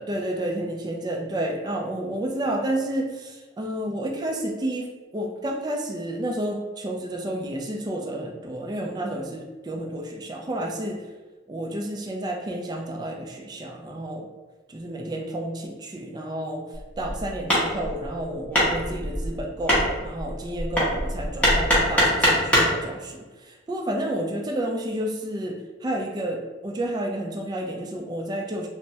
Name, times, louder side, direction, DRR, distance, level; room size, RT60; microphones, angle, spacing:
voice 1, 0.0-4.9 5.1-11.0 11.5-14.2 14.7-16.6 17.0-28.7, right 1 dB, 20° right, 1 dB, 0.3 m, -30 dB
Hammer, 16.7-22.8, equal, 5° left, 0.8 m, -23 dB
3.3 x 2.0 x 2.7 m, 1.3 s
head